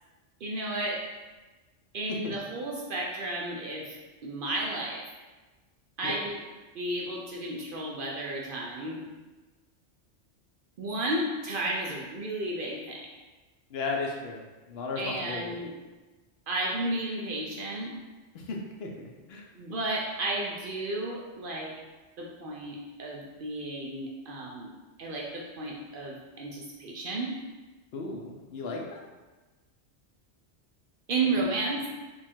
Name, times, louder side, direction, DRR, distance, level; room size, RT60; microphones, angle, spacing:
voice 1, 0.4-1.0 1.9-4.0 4.2-5.0 6.0-6.4 6.7-9.0 10.8-13.0 15.0-15.7 16.5-17.9 19.5-21.7 22.2-24.7 25.0-27.3 31.1-31.8, right 2 dB, 60° right, -3 dB, 0.6 m, -32 dB
voice 2, 13.7-14.4 14.7-15.6 18.3-19.4 27.9-29.0, left 3 dB, 65° left, 0 dB, 0.7 m, -35 dB
3.0 x 2.4 x 4.3 m, 1.3 s
omnidirectional pair, 1.2 m